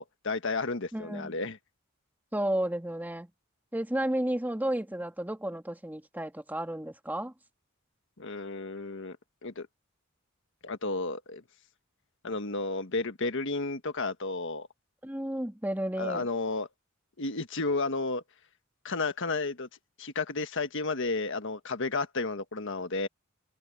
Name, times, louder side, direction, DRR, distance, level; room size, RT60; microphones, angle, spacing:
voice 1, 0.0-1.6 8.2-9.2 9.4-9.7 10.6-11.4 12.2-14.7 16.0-16.7 17.2-18.2 18.8-19.7 20.0-23.1, left 3 dB, 65° left, 1.5 m, -32 dB
voice 2, 0.9-1.4 2.3-3.3 3.7-7.3 15.0-16.3, right 1 dB, 10° right, 2.0 m, -32 dB
head